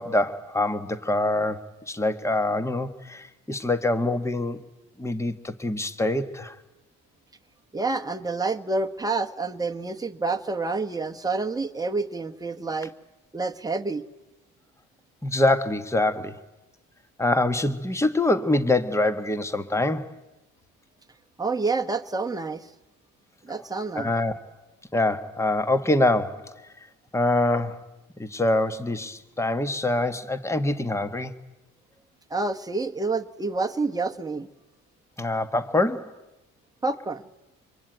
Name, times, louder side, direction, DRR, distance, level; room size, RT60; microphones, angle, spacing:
voice 1, 0.0-4.6 5.0-6.5 15.2-16.4 17.2-20.1 23.9-24.3 24.9-26.5 27.1-27.8 28.2-31.3 35.2-36.1, left 2 dB, 10° left, 1.4 m, -25 dB
voice 2, 7.7-12.9 13.3-14.0 21.4-22.7 23.4-24.1 32.3-34.5 36.8-37.3, right 3 dB, 10° right, 1.2 m, -28 dB
25.5 x 22.5 x 9.2 m
cardioid pair, 85°, 34 cm